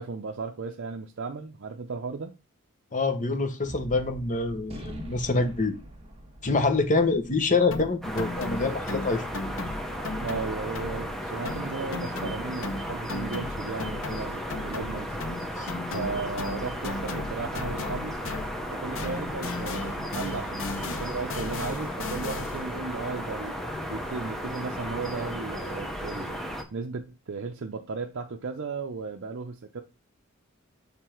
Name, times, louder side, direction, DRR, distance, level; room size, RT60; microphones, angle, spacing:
voice 1, 0.0-2.3 10.2-15.2 15.9-18.2 18.7-23.6 23.9-26.4 26.7-29.8, right 4 dB, 60° right, 0.6 m, -35 dB
voice 2, 2.9-5.8 6.4-9.2 15.6-15.7, left 3 dB, 35° left, 0.9 m, -26 dB
Gunshot gunfire, 3.6-10.2, equal, 30° right, 1.3 m, -45 dB
sound 1, 7.7-11.2 11.4-18.7 18.9-22.7, left 3 dB, 60° left, 0.6 m, -36 dB
sound 2, 8.0-26.6, equal, ahead, 0.8 m, -35 dB
6.7 x 3.4 x 4.4 m
head